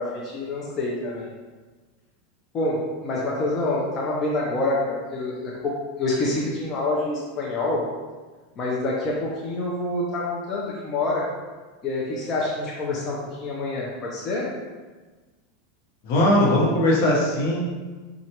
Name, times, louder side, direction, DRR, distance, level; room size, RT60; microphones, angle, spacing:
voice 1, 0.0-1.3 2.5-5.7 6.0-7.8 8.6-11.2 11.8-14.5, left 2 dB, 30° left, -5 dB, 0.6 m, -27 dB
voice 2, 16.0-17.6, left 1 dB, 60° left, -3 dB, 1.0 m, -19 dB
4.3 x 2.4 x 2.9 m, 1.3 s
supercardioid pair, 130°, 0 cm